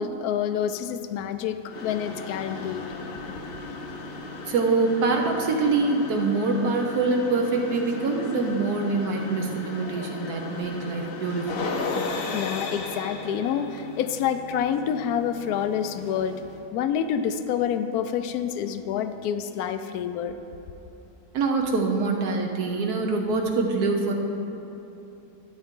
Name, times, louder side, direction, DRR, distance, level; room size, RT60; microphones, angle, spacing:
voice 1, 0.0-2.9 3.3-3.7 12.3-16.4 16.7-20.4, left 8 dB, 75° left, 10 dB, 1.0 m, -28 dB
sound 1, 1.7-16.6, left 3 dB, 50° left, 0.7 m, -36 dB
voice 2, 4.5-11.8 21.3-24.1, right 3 dB, 70° right, 1 dB, 1.3 m, -25 dB
13.0 x 8.1 x 3.7 m, 2.9 s
omnidirectional pair, 1.7 m